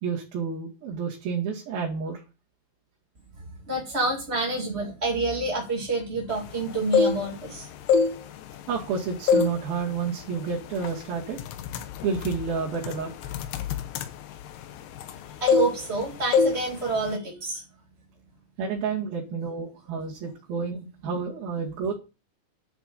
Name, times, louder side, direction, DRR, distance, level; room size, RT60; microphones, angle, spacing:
voice 1, 0.0-2.2 8.7-11.4 12.0-13.3 18.6-21.9, right 5 dB, 60° right, -4 dB, 3.8 m, -30 dB
voice 2, 3.7-7.7 15.4-17.6, right 2 dB, 20° right, -1 dB, 1.7 m, -28 dB
sound 1, 6.7-7.5 7.8-8.9 9.3-9.6 10.0-10.2 10.8-11.0 11.3-15.2 15.5-16.0 16.3-16.6 16.9-17.2, left 5 dB, 75° left, 3.1 m, -24 dB
10.5 x 7.6 x 6.9 m, 0.31 s
omnidirectional pair, 4.9 m